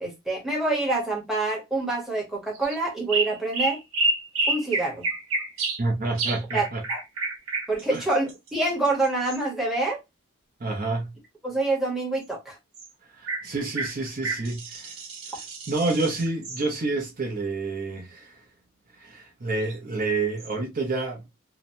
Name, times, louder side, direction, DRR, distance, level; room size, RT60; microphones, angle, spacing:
voice 1, 0.0-3.8 4.5-5.1 6.5-7.0 7.7-10.0 11.4-12.6, right 2 dB, ahead, 0.9 m, -26 dB
sound 1, 2.5-2.8 3.1-5.8 6.2-9.4 12.7-12.9 13.3-13.5 13.8-16.6 19.6-19.7 20.4-20.5, right 2 dB, 75° right, 1.0 m, -29 dB
voice 2, 5.8-6.8 7.9-8.0 10.6-11.1 13.2-14.9 15.7-18.4 19.0-21.2, right 3 dB, 40° right, 0.6 m, -28 dB
2.8 x 2.0 x 2.6 m
head